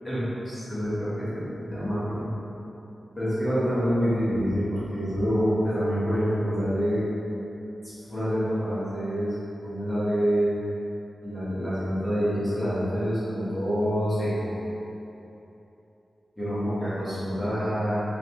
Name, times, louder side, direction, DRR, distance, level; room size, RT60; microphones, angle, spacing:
voice 1, 0.0-2.3 3.1-7.0 8.1-9.3 9.6-10.6 11.2-14.5 16.4-18.0, equal, 15° left, -13 dB, 1.3 m, -27 dB
3.9 x 2.9 x 3.5 m, 3.0 s
wide cardioid pair, 175°, 0 cm